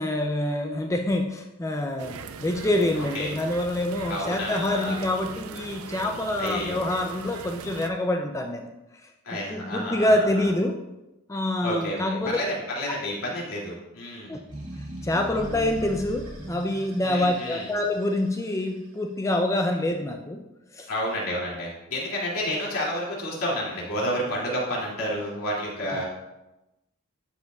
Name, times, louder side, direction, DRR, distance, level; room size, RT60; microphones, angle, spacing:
voice 1, 0.0-8.7 9.5-10.8 11.3-12.4 14.3-14.4 15.0-20.4 20.7-20.9 25.9-26.0, left 1 dB, 15° left, 4 dB, 0.3 m, -26 dB
sound 1, 2.0-7.9, right 6 dB, 75° right, 0.4 m, -40 dB
voice 2, 2.9-3.3 4.1-5.0 6.4-6.8 9.2-10.5 11.6-14.4 17.0-17.7 20.9-26.0, equal, 75° left, -5 dB, 2.5 m, -30 dB
sound 2, 14.5-18.8, right 1 dB, 55° right, 2.0 m, -39 dB
11.5 x 5.1 x 2.3 m, 0.97 s
head